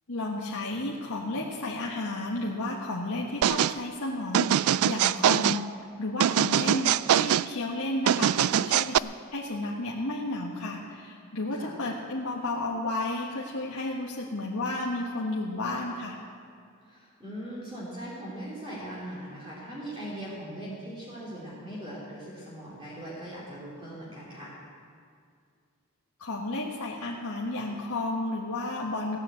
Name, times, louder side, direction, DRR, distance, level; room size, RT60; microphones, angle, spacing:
voice 1, 0.1-16.2 26.2-29.2, left 2 dB, 75° left, -4 dB, 1.5 m, -32 dB
sound 1, 3.4-3.8 4.3-5.6 6.2-7.5 8.1-9.0, right 10 dB, 70° right, 0.3 m, -23 dB
voice 2, 16.8-24.5, right 1 dB, 25° right, -7 dB, 2.9 m, -40 dB
17.0 x 10.0 x 7.9 m, 2.3 s
head